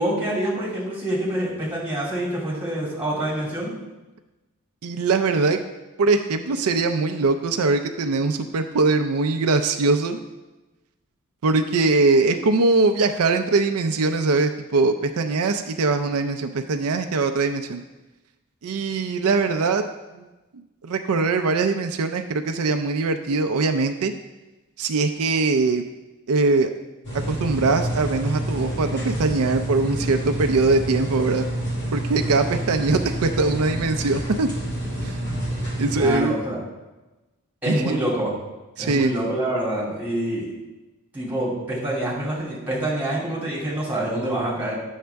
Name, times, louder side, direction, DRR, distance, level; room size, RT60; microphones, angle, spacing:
voice 1, 0.0-3.7 35.9-36.6 37.6-38.3 38.8-40.5 41.1-44.7, right 1 dB, 10° right, -6 dB, 2.7 m, -26 dB
voice 2, 4.8-5.6 6.0-10.2 11.4-17.8 18.6-19.8 20.1-20.2 20.8-24.1 24.8-25.8 26.3-26.7 27.3-31.4 31.9-34.5 35.0-35.2 35.8-36.4 37.7-38.0 38.8-39.1, right 3 dB, 75° right, 7 dB, 0.5 m, -22 dB
sound 1, 27.0-36.1, right 1 dB, 55° left, 2.2 m, -28 dB
9.3 x 6.4 x 3.4 m, 1.1 s
head